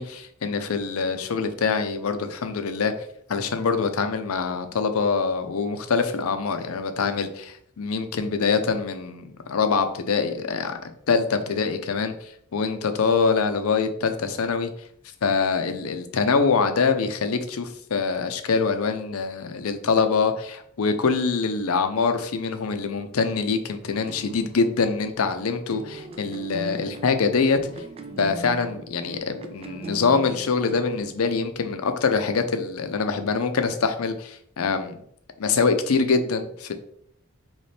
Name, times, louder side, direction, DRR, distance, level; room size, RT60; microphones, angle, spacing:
voice 1, 0.0-2.9 3.3-10.8 11.1-14.7 15.2-27.6 28.2-34.9 35.4-36.7, left 5 dB, 85° left, 8 dB, 0.5 m, -24 dB
sound 1, 23.9-31.6, right 2 dB, 30° right, 0.4 m, -41 dB
4.1 x 3.1 x 3.3 m, 0.65 s
head